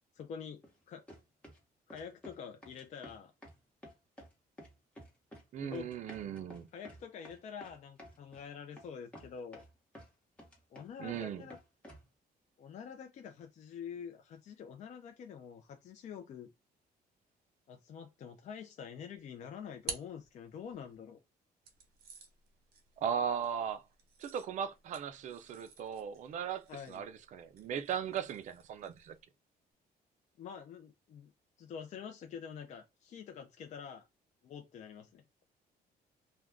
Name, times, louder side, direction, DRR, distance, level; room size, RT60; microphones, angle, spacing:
voice 1, 0.1-1.1 1.9-3.3 5.6-5.9 6.7-9.6 10.7-11.6 12.6-16.5 17.7-21.2 26.7-27.0 30.4-31.3 31.6-34.1 34.4-35.4, left 7 dB, 45° left, 0.4 m, -47 dB
sound 1, 0.6-0.8 1.1-1.6 1.9-2.4 2.6-3.6 3.8-4.3 4.6-5.5 5.7-8.4 8.8-8.9 9.1-10.1 10.4-11.2 11.5-12.1, equal, 10° left, 1.1 m, -52 dB
voice 2, 5.5-6.7 11.0-11.4 23.0-23.8 24.2-29.2, right 8 dB, 50° right, 0.4 m, -37 dB
sound 2, 19.1-20.9 21.6-29.2, right 6 dB, 70° right, 1.0 m, -51 dB
2.4 x 2.2 x 3.4 m
cardioid pair, 155°, 16 cm